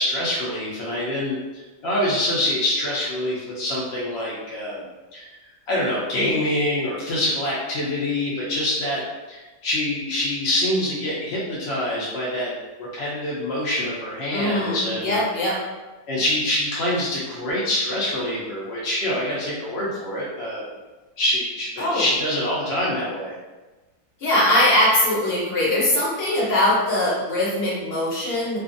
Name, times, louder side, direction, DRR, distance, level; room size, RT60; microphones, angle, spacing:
voice 1, 0.0-1.4 1.8-4.8 5.1-5.3 5.7-9.0 9.3-12.5 12.8-15.2 16.1-20.6 21.2-23.3, left 1 dB, 70° left, -6 dB, 0.6 m, -25 dB
voice 2, 14.3-15.6 21.8-22.1 24.2-28.6, left 1 dB, 45° left, -7 dB, 1.0 m, -21 dB
2.5 x 2.4 x 2.5 m, 1.2 s
omnidirectional pair, 1.7 m